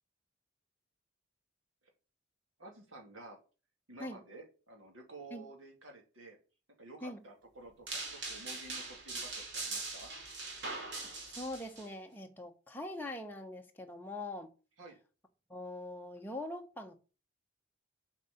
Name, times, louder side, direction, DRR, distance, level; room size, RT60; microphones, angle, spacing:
voice 1, 2.6-3.4 3.9-6.4 6.8-10.1 14.8-15.0, right 2 dB, 80° right, 2.4 m, -52 dB
sound 1, 7.9-11.9, right 3 dB, 60° right, 2.7 m, -41 dB
voice 2, 10.9-14.5 15.5-17.0, left 1 dB, 10° left, 1.0 m, -43 dB
7.4 x 4.9 x 7.0 m
head